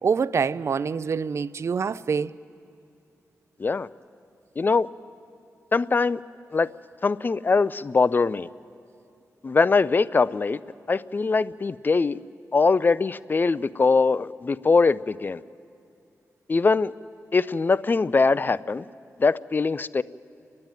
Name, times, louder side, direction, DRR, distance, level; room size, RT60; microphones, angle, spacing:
voice 1, 0.0-2.3, right 5 dB, 55° right, 0.4 m, -25 dB
voice 2, 4.6-4.9 5.7-6.2 6.5-6.7 7.0-8.5 9.4-10.6 10.9-12.2 12.5-15.4 16.5-16.9 17.3-18.8 19.2-20.0, left 4 dB, 35° left, 0.4 m, -22 dB
29.5 x 10.5 x 9.0 m
wide cardioid pair, 85°, 6 cm